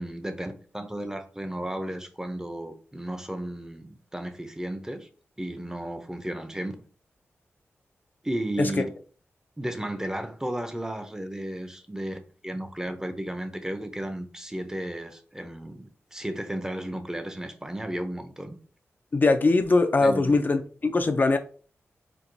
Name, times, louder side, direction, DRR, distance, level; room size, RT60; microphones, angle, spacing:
voice 1, 0.0-5.1 5.4-6.8 8.2-8.8 9.6-18.6 20.0-20.3, right 1 dB, 10° right, 0.5 m, -34 dB
voice 2, 19.1-21.4, left 3 dB, 40° left, 0.3 m, -21 dB
4.4 x 2.3 x 2.6 m
cardioid pair, 65°, 5 cm